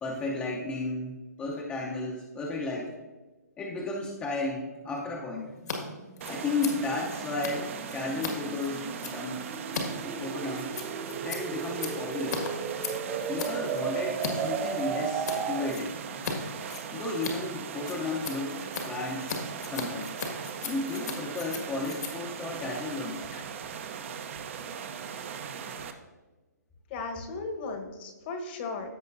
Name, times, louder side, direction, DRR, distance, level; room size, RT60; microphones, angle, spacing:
voice 1, 0.0-3.0 3.6-5.5 6.2-9.5 10.0-10.7 11.2-12.4 13.3-16.0 16.9-20.1 20.6-23.3, left 3 dB, 15° left, -2 dB, 0.7 m, -33 dB
sound 1, 4.7-16.0, right 6 dB, 15° right, 0.5 m, -36 dB
Scissors, 5.5-5.8 6.0-14.3 14.6-15.4 15.7-16.3 16.6-23.4, left 5 dB, 65° left, 1.8 m, -38 dB
sound 2, 6.2-25.9, right 7 dB, 45° right, 0.8 m, -39 dB
voice 2, 26.9-28.9, left 3 dB, 35° left, 5 dB, 1.2 m, -36 dB
15.0 x 5.3 x 2.7 m, 1.2 s
hypercardioid pair, 145°, 10 cm